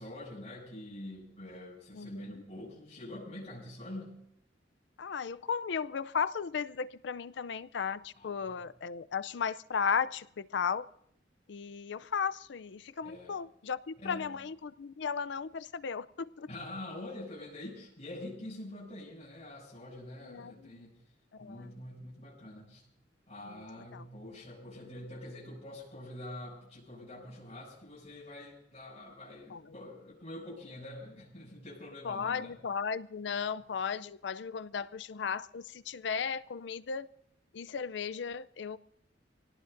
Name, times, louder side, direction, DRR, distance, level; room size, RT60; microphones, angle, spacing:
voice 1, 0.0-4.2 8.1-8.6 13.0-13.4 14.0-14.4 16.5-21.0 21.4-22.8 23.3-32.6, left 1 dB, 35° left, -6 dB, 7.3 m, -45 dB
voice 2, 1.9-2.4 5.0-10.9 11.5-16.5 20.2-20.9 21.4-21.7 23.5-23.6 23.9-24.0 29.5-29.6 32.0-37.1 37.5-38.8, left 6 dB, 70° left, 16 dB, 0.5 m, -35 dB
26.5 x 18.0 x 2.6 m, 0.71 s
head